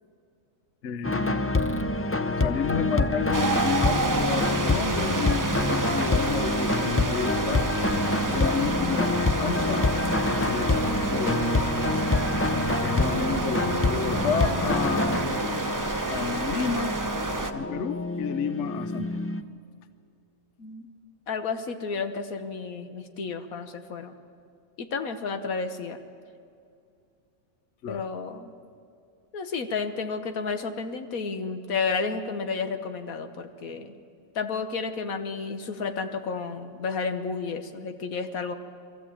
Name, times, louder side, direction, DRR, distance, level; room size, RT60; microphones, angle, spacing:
voice 1, 0.8-1.4 2.4-7.7 8.3-9.9 10.5-11.6 12.8-15.2 16.1-17.0 17.5-19.2 27.8-28.0, left 7 dB, 65° left, 12 dB, 1.0 m, -31 dB
sound 1, 1.0-19.4, left 2 dB, 20° left, 0.3 m, -27 dB
sound 2, 3.3-17.5, right 3 dB, 20° right, 0.6 m, -29 dB
voice 2, 20.6-20.9 21.3-24.1 24.8-26.0 27.9-28.5 29.3-33.9 34.3-38.5, left 4 dB, 80° left, 8 dB, 1.6 m, -31 dB
22.0 x 14.0 x 8.7 m, 2.4 s
omnidirectional pair, 1.5 m